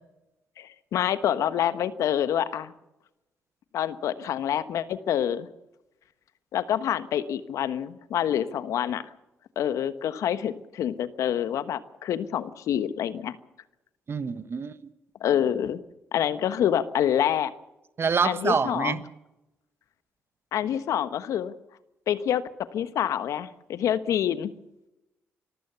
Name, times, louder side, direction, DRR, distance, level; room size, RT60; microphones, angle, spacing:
voice 1, 0.6-2.7 3.7-5.5 6.5-9.0 9.6-13.4 15.2-15.8 16.1-17.5 18.2-19.0 20.5-21.5 22.1-22.4 22.7-24.5, left 10 dB, 70° left, 13 dB, 1.2 m, -27 dB
voice 2, 14.1-14.7 18.0-19.0, right 5 dB, 45° right, 13 dB, 1.5 m, -26 dB
26.0 x 14.5 x 7.0 m, 0.94 s
hypercardioid pair, 50°, 6 cm